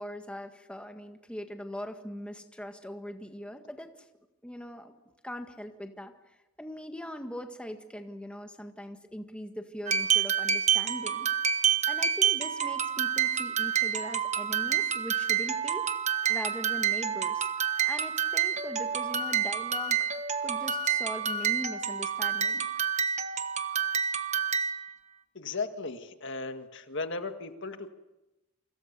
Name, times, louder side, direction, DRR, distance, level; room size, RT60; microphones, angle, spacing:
voice 1, 0.0-3.9 4.4-4.9 5.2-6.1 6.6-11.3 11.9-15.9 16.3-17.5 17.8-22.7, equal, 5° left, 5 dB, 1.7 m, -41 dB
sound 1, 9.9-24.9, right 8 dB, 35° right, 1.3 m, -28 dB
voice 2, 25.4-27.9, left 3 dB, 60° left, 7 dB, 1.8 m, -36 dB
28.5 x 25.5 x 6.8 m, 0.98 s
head